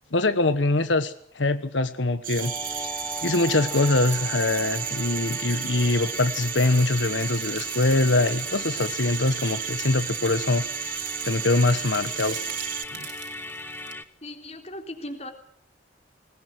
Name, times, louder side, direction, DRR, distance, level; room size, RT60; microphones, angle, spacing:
voice 1, 0.1-2.5 3.2-10.6 11.2-12.4 13.0-13.1, left 2 dB, 90° left, 12 dB, 1.2 m, -23 dB
sound 1, 2.2-12.8, right 13 dB, 50° right, 1.0 m, -33 dB
Musical instrument, 2.4-14.0, left 2 dB, 10° left, 1.1 m, -38 dB
sound 2, 7.0-13.9, right 10 dB, 70° right, 3.8 m, -44 dB
voice 2, 14.2-15.3, left 1 dB, 35° left, 6 dB, 3.6 m, -37 dB
20.5 x 20.0 x 8.2 m, 0.64 s
head